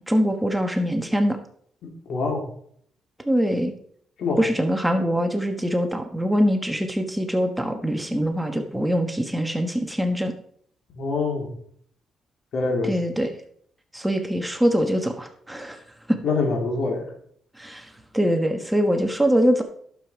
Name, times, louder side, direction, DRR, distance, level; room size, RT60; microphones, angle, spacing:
voice 1, 0.1-1.4 3.3-3.7 4.4-10.3 12.8-13.3 13.9-15.8 16.1-16.2 17.6-19.6, equal, 5° right, 5 dB, 1.3 m, -23 dB
voice 2, 1.8-2.4 4.2-4.4 10.9-11.5 12.5-12.9 16.2-17.1, left 3 dB, 65° left, 2 dB, 3.3 m, -25 dB
11.5 x 7.0 x 4.6 m, 0.63 s
cardioid pair, 90°, 0 cm